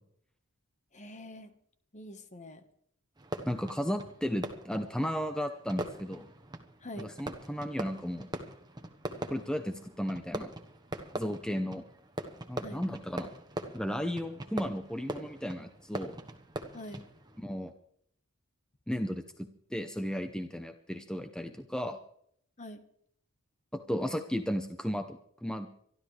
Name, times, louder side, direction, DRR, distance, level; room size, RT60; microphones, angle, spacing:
voice 1, 0.9-1.5 1.9-2.6 6.8-7.1 12.6-12.8 16.7-17.0 22.6-22.8, left 1 dB, 30° left, 9 dB, 1.3 m, -44 dB
Fireworks, 3.2-17.4, right 1 dB, 20° right, 1.2 m, -42 dB
voice 2, 3.5-6.3 7.0-8.3 9.3-10.5 11.1-11.8 12.5-13.3 13.7-16.2 17.4-17.7 18.9-22.0 23.7-25.7, equal, 5° left, 6 dB, 0.7 m, -34 dB
25.0 x 12.5 x 3.3 m, 0.66 s
head